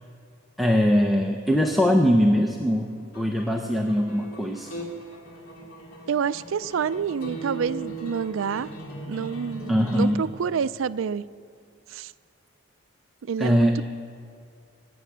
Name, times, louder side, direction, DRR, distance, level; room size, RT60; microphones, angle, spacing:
voice 1, 0.6-4.7 9.7-10.2 13.4-13.8, equal, ahead, 1 dB, 0.6 m, -21 dB
sound 1, 2.7-10.1, right 2 dB, 90° left, 2.6 m, -39 dB
voice 2, 6.1-8.7 9.1-11.2 11.9-12.1 13.2-13.8, right 6 dB, 60° right, 15 dB, 0.4 m, -28 dB
21.0 x 9.3 x 7.2 m, 2.3 s
head